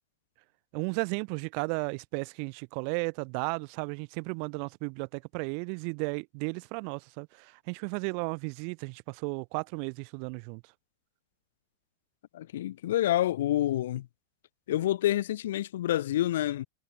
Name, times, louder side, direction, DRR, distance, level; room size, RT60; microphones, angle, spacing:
voice 1, 0.7-10.6, right 40 dB or more, 45° right, 4.5 m, -34 dB
voice 2, 12.3-14.1 14.7-16.7, left 13 dB, 60° left, 2.5 m, -28 dB
figure-of-eight pair, 90°, 0 cm